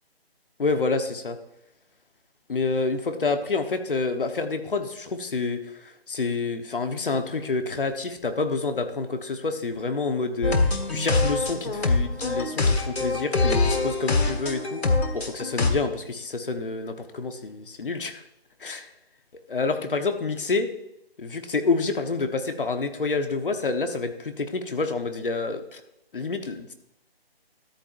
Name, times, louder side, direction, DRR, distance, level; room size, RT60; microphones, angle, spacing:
voice 1, 0.6-1.4 2.5-14.8 15.1-18.2 18.6-18.9 19.5-20.7 21.2-25.8 26.1-26.7, left 3 dB, 60° left, 7 dB, 1.2 m, -28 dB
sound 1, 10.4-15.7, left 3 dB, 90° left, 1.8 m, -24 dB
13.0 x 10.5 x 2.6 m, 0.83 s
hypercardioid pair, 170°, 31 cm